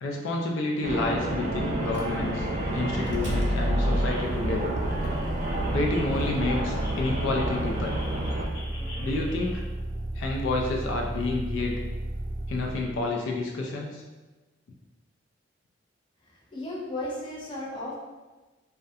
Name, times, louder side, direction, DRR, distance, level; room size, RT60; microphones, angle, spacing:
voice 1, 0.0-2.5 2.7-4.7 5.7-8.0 9.0-9.6 10.2-11.8 12.5-14.0, left 2 dB, 80° left, 0 dB, 0.4 m, -29 dB
sound 1, 0.8-8.4, right 1 dB, 35° right, 0.3 m, -30 dB
sound 2, 0.9-9.6, right 1 dB, 55° left, 0.8 m, -40 dB
Motor vehicle (road), 1.8-13.0, right 1 dB, 90° right, 0.5 m, -32 dB
voice 2, 16.2-18.0, left 1 dB, 25° left, -5 dB, 0.5 m, -35 dB
2.4 x 2.1 x 2.6 m, 1.2 s
head